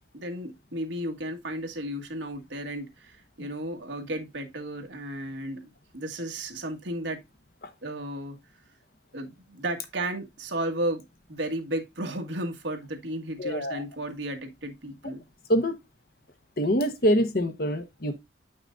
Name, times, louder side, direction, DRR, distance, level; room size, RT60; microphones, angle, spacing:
voice 1, 0.1-7.2 7.8-8.4 9.1-11.0 11.3-15.2, right 1 dB, 85° right, 1.7 m, -34 dB
voice 2, 13.4-13.8 15.5-15.8 16.6-18.2, equal, 55° left, 1.1 m, -25 dB
8.9 x 6.0 x 2.5 m
head